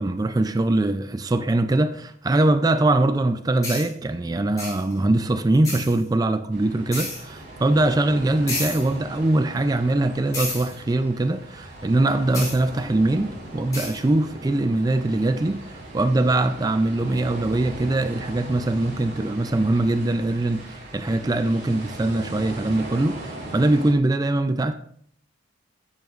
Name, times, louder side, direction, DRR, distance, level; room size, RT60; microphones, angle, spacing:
voice 1, 0.0-24.7, right 2 dB, 20° right, 0.4 m, -22 dB
sound 1, 3.6-3.9 4.6-4.9 5.6-6.0 6.9-7.2 8.5-8.9 10.3-10.7 12.3-12.6 13.7-14.0, left 2 dB, 20° left, 4.0 m, -30 dB
sound 2, 6.5-23.9, right 1 dB, 45° right, 3.8 m, -39 dB
13.0 x 9.2 x 2.5 m
head